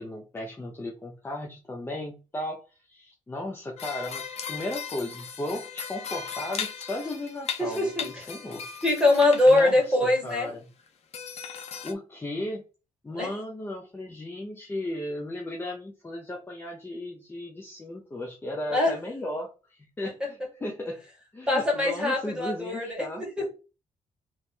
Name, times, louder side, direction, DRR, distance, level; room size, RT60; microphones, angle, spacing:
voice 1, 0.0-4.2 4.5-8.6 9.5-10.6 11.8-12.6 13.0-21.0 21.3-23.5, left 1 dB, 15° left, -1 dB, 0.8 m, -35 dB
sound 1, 3.8-9.7 10.1-10.5 10.8-10.9 11.1-11.9, left 7 dB, 60° left, 0.8 m, -37 dB
voice 2, 7.6-8.2 8.8-10.5 13.1-13.3 18.7-18.9 21.5-23.5, left 2 dB, 5° right, -2 dB, 2.1 m, -23 dB
3.3 x 3.1 x 4.2 m, 0.32 s
cardioid pair, 130°, 13 cm